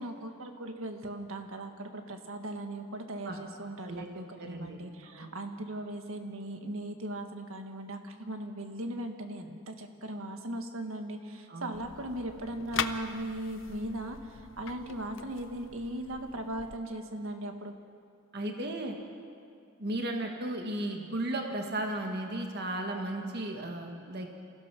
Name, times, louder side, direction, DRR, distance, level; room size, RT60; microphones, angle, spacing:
voice 1, 0.0-17.7, right 1 dB, 70° right, 5 dB, 1.7 m, -38 dB
voice 2, 4.4-5.3 11.5-11.8 18.3-19.0 19.8-24.4, right 1 dB, 50° right, 3 dB, 1.7 m, -35 dB
sound 1, 11.7-16.8, left 7 dB, 60° left, 0.7 m, -41 dB
27.0 x 16.0 x 6.2 m, 2.4 s
head